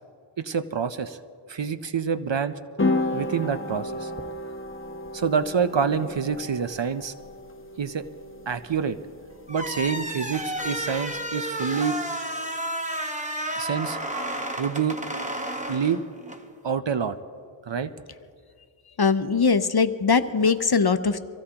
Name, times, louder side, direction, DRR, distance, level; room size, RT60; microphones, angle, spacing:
voice 1, 0.4-1.2 1.5-2.5 3.1-4.1 5.1-7.1 7.8-8.0 8.5-9.0 9.5-12.0 13.5-14.0 14.6-15.0 15.7-16.0 16.6-17.2 17.7-17.9, right 6 dB, 60° right, 11 dB, 0.6 m, -27 dB
sound 1, 2.8-11.2, left 2 dB, 25° left, 0.9 m, -33 dB
sound 2, 9.5-16.5, right 1 dB, 15° right, 1.1 m, -32 dB
voice 2, 19.0-21.2, left 5 dB, 50° left, 10 dB, 0.7 m, -21 dB
24.5 x 16.0 x 2.9 m, 2.1 s
wide cardioid pair, 40°, 49 cm